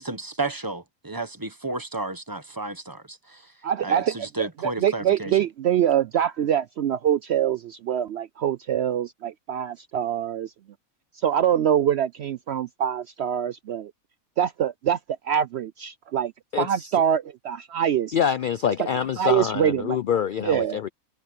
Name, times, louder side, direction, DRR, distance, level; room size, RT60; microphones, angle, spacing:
voice 1, 0.0-3.4 3.8-5.4, right 2 dB, 15° right, 1.1 m, -32 dB
voice 2, 3.6-10.5 11.2-13.9 14.4-15.0 15.2-16.3 16.6-18.1 18.8-18.9 19.2-20.0 20.4-20.9, right 9 dB, 65° right, 0.7 m, -24 dB
voice 3, 16.5-16.9 18.1-20.9, left 8 dB, 70° left, 0.5 m, -26 dB
omnidirectional pair, 1.5 m